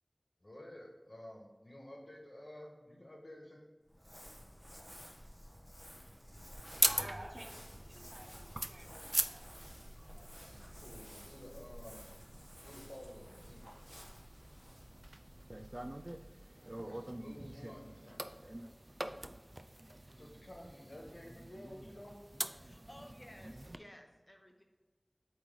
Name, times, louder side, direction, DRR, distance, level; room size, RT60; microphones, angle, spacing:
voice 1, 0.4-3.6 10.4-12.2 12.5-13.6 16.8-18.3 20.1-22.2, left 1 dB, 65° left, -1 dB, 1.4 m, -52 dB
Crumpling crinkling, 3.8-16.3, equal, ahead, 1.4 m, -53 dB
sound 1, 6.4-23.8, right 1 dB, 40° right, 0.3 m, -42 dB
voice 2, 7.0-7.5 7.9-9.4, right 1 dB, 60° right, 1 dB, 1.0 m, -51 dB
voice 3, 22.5-24.6, left 1 dB, 30° left, 3 dB, 0.9 m, -56 dB
8.2 x 3.1 x 3.8 m, 1.3 s
wide cardioid pair, 40°, 0 cm